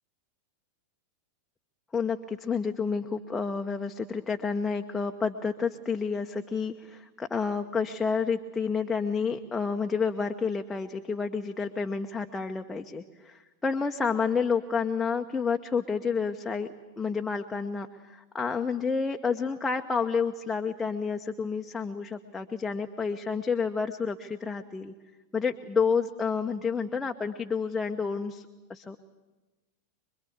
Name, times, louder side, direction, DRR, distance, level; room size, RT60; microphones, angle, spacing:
voice 1, 1.9-16.7 17.0-24.9 25.3-29.0, left 5 dB, 10° left, 3 dB, 1.0 m, -30 dB
25.5 x 22.0 x 8.5 m, 1.2 s
figure-of-eight pair, 90°, 0 cm